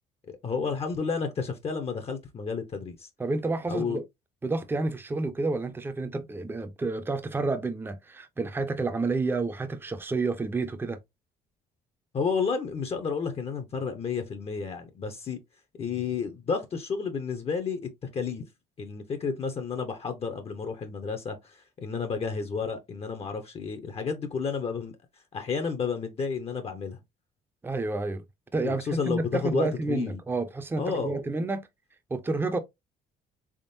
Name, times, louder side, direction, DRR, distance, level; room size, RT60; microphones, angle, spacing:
voice 1, 0.4-3.1 3.7-4.0 12.1-15.4 15.8-18.4 18.8-24.9 25.3-27.0 28.6-30.2 30.8-31.3, left 5 dB, 35° left, 0.7 m, -31 dB
voice 2, 3.2-4.0 4.4-11.0 27.6-28.2 28.5-31.7 32.1-32.6, right 3 dB, 15° right, 0.6 m, -29 dB
3.6 x 3.5 x 2.6 m
cardioid pair, 110°, 17 cm